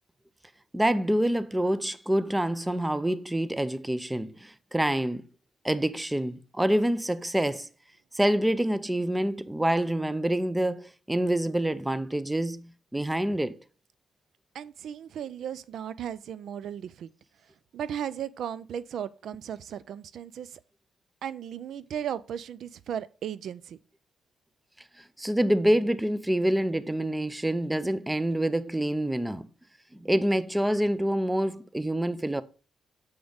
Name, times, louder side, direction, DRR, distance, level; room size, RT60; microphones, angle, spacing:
voice 1, 0.7-5.3 5.6-7.7 8.1-13.6 25.2-29.5 29.9-32.4, right 1 dB, 10° right, 0.5 m, -26 dB
voice 2, 14.5-17.1 17.7-20.5 21.2-23.8, right 9 dB, 70° right, 0.3 m, -36 dB
7.1 x 5.0 x 3.9 m
cardioid pair, 90°, 0 cm